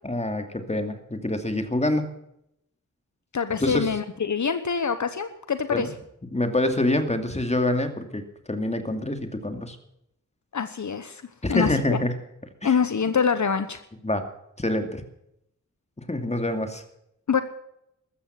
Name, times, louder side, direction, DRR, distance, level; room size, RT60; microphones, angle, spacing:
voice 1, 0.0-2.1 3.5-3.9 5.7-5.9 6.3-9.8 11.4-12.1 12.6-12.8 14.0-14.2 14.6-15.0 16.0-16.8, left 1 dB, 20° left, 7 dB, 2.4 m, -26 dB
voice 2, 3.3-5.9 10.5-11.2 11.5-12.0 12.6-13.8 17.3-17.4, left 6 dB, 65° left, 10 dB, 1.1 m, -25 dB
14.0 x 13.5 x 5.9 m, 0.77 s
wide cardioid pair, 80°, 31 cm